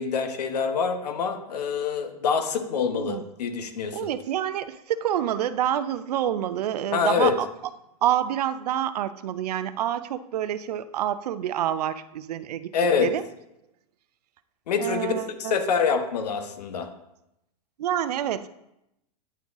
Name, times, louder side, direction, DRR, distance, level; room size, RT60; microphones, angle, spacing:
voice 1, 0.0-4.0 6.9-7.3 12.7-13.1 14.7-15.1 15.4-16.9, left 6 dB, 90° left, 7 dB, 1.1 m, -25 dB
voice 2, 2.9-3.2 3.9-7.5 8.0-12.7 13.0-13.2 14.8-15.5 17.8-18.5, right 11 dB, 85° right, 14 dB, 0.5 m, -27 dB
10.0 x 3.6 x 3.9 m, 0.85 s
supercardioid pair, 150°, 20 cm